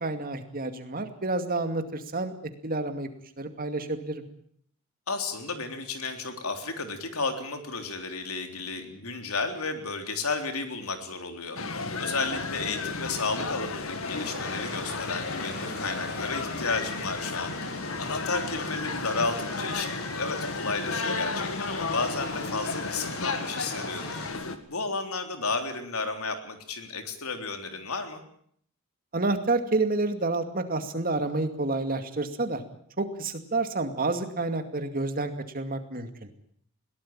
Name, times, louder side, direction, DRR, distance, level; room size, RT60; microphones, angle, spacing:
voice 1, 0.0-2.3 2.6-3.1 3.4-4.2 29.1-32.6 33.0-36.3, right 2 dB, 40° right, 7 dB, 2.4 m, -29 dB
voice 2, 5.1-11.6 12.0-24.2 24.7-28.2, left 3 dB, 85° left, 6 dB, 3.6 m, -33 dB
sound 1, 11.5-24.6, left 3 dB, 70° left, 2.1 m, -33 dB
sound 2, 14.0-24.3, left 2 dB, 50° left, 7.6 m, -41 dB
21.5 x 18.0 x 8.9 m, 0.64 s
head